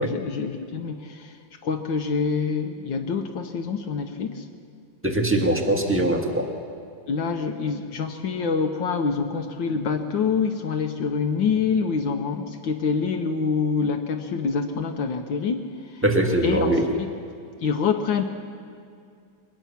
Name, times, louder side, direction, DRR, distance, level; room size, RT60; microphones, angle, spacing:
voice 1, 0.0-4.6 7.1-16.0 16.4-16.7 17.0-17.1 17.6-18.2, left 5 dB, 75° left, 4 dB, 1.6 m, -26 dB
voice 2, 5.0-6.5 16.0-16.8, right 1 dB, 5° right, 2 dB, 1.6 m, -22 dB
22.5 x 19.5 x 5.9 m, 2.3 s
omnidirectional pair, 2.1 m